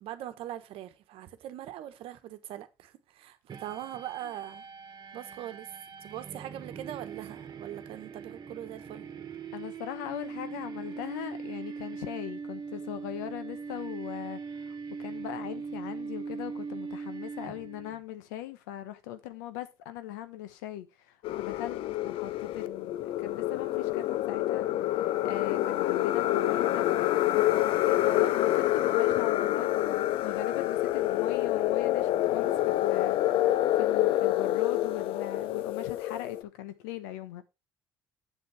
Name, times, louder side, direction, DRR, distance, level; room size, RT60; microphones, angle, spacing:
voice 1, 0.0-4.6 5.1-5.7 6.0-9.1, right 12 dB, 70° right, 1.1 m, -41 dB
sound 1, 3.5-18.0, right 5 dB, 45° right, 1.4 m, -41 dB
voice 2, 9.5-21.8 22.0-37.4, left 12 dB, 85° left, 0.9 m, -40 dB
sound 2, 21.2-36.4, left 14 dB, 65° left, 0.5 m, -27 dB
7.9 x 7.4 x 3.3 m
hypercardioid pair, 60°, 10 cm